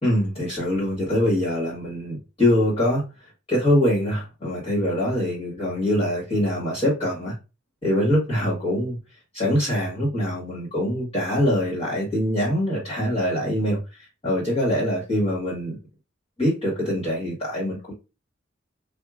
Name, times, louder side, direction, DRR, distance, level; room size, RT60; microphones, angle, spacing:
voice 1, 0.0-3.0 3.5-7.3 7.8-9.0 9.3-15.8 16.4-17.9, equal, 30° left, -6 dB, 1.5 m, -23 dB
4.5 x 2.3 x 2.4 m, 0.29 s
head